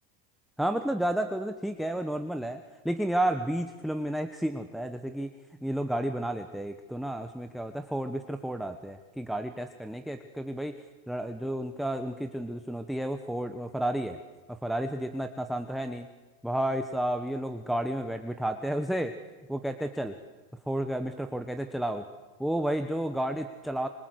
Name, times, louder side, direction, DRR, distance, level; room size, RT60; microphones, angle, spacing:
voice 1, 0.6-5.3 5.6-10.7 11.1-14.2 14.5-16.1 16.4-19.1 19.5-20.1 20.7-22.1 22.4-23.9, right 1 dB, ahead, 6 dB, 1.2 m, -31 dB
25.5 x 25.0 x 8.1 m, 1.3 s
supercardioid pair, 105°, 40 cm